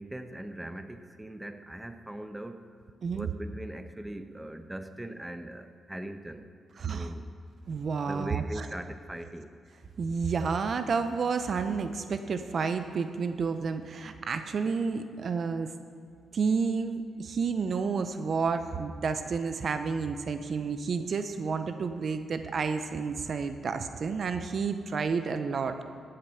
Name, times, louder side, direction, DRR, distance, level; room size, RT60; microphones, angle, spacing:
voice 1, 0.0-2.7 3.1-6.5 6.9-7.3 8.0-9.5, right 1 dB, 10° right, 9 dB, 0.9 m, -40 dB
voice 2, 6.8-7.1 7.7-8.7 10.0-15.7 16.3-25.8, right 5 dB, 60° right, 9 dB, 0.7 m, -30 dB
14.5 x 7.7 x 5.8 m, 2.2 s
supercardioid pair, 50°, 0 cm